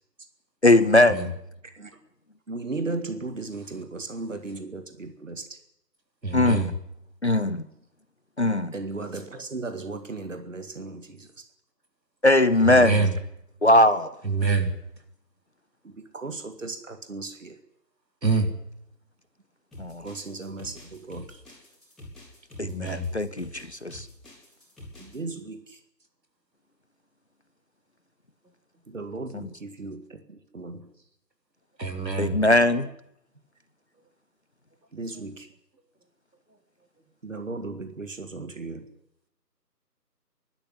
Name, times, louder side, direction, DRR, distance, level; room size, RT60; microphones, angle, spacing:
voice 1, 0.6-1.3 6.3-6.7 7.2-7.6 8.4-8.7 12.2-13.1 13.6-14.1 19.8-20.1 22.6-24.1 29.3-29.5 32.2-32.9, left 1 dB, 45° left, 14 dB, 0.8 m, -20 dB
voice 2, 2.5-5.5 8.4-11.3 15.8-17.6 20.0-21.3 25.0-25.8 28.9-30.9 34.9-35.5 37.2-38.9, right 3 dB, 50° right, 8 dB, 2.1 m, -36 dB
voice 3, 6.2-6.7 12.6-13.1 14.2-14.7 18.2-18.5 22.7-23.1 31.8-32.4, right 4 dB, 85° right, 5 dB, 3.9 m, -25 dB
sound 1, 19.7-25.2, left 1 dB, ahead, 3.0 m, -46 dB
25.5 x 12.5 x 10.0 m, 0.78 s
figure-of-eight pair, 170°, 49 cm